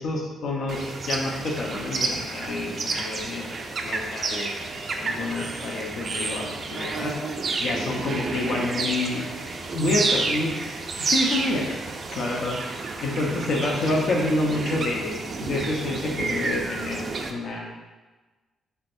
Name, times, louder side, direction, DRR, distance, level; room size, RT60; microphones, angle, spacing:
voice 1, 0.0-4.5 4.8-7.1 7.6-9.4 9.7-10.6 11.1-11.8 12.1-12.6 13.0-17.0 17.3-17.8, left 2 dB, 65° left, -1 dB, 0.9 m, -28 dB
sound 1, 0.7-17.3, right 3 dB, 45° right, 0.5 m, -30 dB
6.1 x 3.3 x 2.6 m, 1.2 s
cardioid pair, 90°, 0 cm